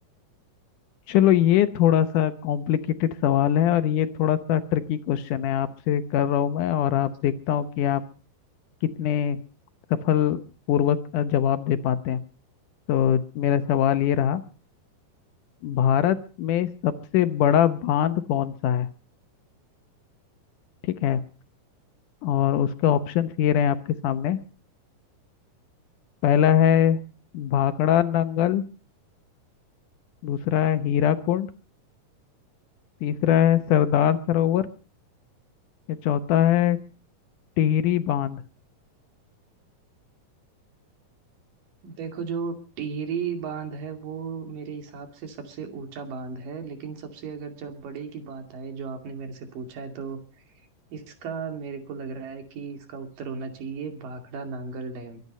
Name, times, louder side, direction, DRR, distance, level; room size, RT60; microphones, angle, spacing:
voice 1, 1.1-8.0 9.0-9.4 10.0-10.4 10.7-12.2 12.9-14.4 15.6-18.9 20.8-21.2 22.2-24.4 26.2-27.0 27.3-28.6 30.2-31.5 33.0-34.7 35.9-36.8 37.6-38.4, left 10 dB, 75° left, 11 dB, 2.3 m, -22 dB
voice 2, 41.8-50.2 50.9-55.2, right 5 dB, 75° right, 5 dB, 4.1 m, -35 dB
23.5 x 9.7 x 5.4 m, 0.37 s
omnidirectional pair, 3.9 m